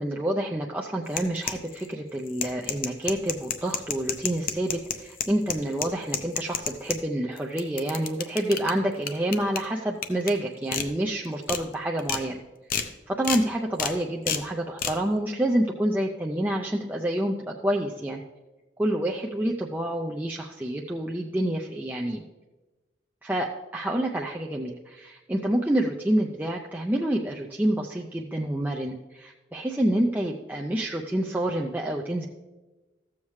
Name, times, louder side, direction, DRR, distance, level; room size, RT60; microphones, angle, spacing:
voice 1, 0.0-12.4 13.1-18.2 18.8-22.2 23.2-32.3, right 1 dB, 10° right, -1 dB, 0.4 m, -28 dB
sound 1, 1.1-1.9 2.3-7.0 7.4-8.7 9.1-9.6 10.0-10.3 10.7-10.9 11.2-11.6 12.0-12.2 12.7-12.9 13.2-13.4 13.8-13.9 14.3-14.4 14.8-14.9, left 7 dB, 50° left, 0.6 m, -29 dB
14.0 x 7.2 x 3.1 m, 1.2 s
head